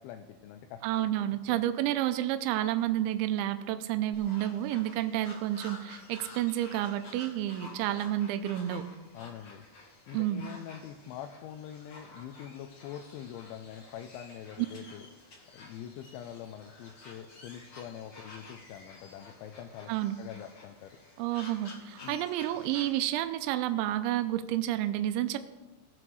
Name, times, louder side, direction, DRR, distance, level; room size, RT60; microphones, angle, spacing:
voice 1, 0.0-1.7 9.1-9.6 10.1-15.1 15.5-19.9 20.2-21.0 22.0-22.2, left 10 dB, 80° left, 5 dB, 2.9 m, -44 dB
voice 2, 0.8-8.8 10.1-10.4 19.9-20.2 21.2-25.4, right 13 dB, 85° right, 9 dB, 2.9 m, -30 dB
sound 1, 4.1-23.2, left 2 dB, 60° left, 1.4 m, -51 dB
19.5 x 7.9 x 4.7 m, 1.1 s
omnidirectional pair, 5.6 m